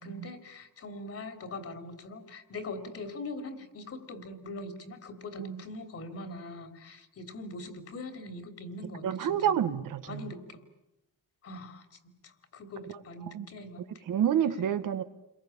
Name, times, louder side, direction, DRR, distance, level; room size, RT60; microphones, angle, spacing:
voice 1, 0.0-9.5 10.1-10.6 11.4-13.9, left 2 dB, 50° left, 8 dB, 3.3 m, -42 dB
voice 2, 9.0-10.3 13.3-13.5 14.1-15.0, right 9 dB, 90° right, 10 dB, 1.6 m, -28 dB
29.5 x 22.5 x 8.7 m, 0.90 s
wide cardioid pair, 145°, 31 cm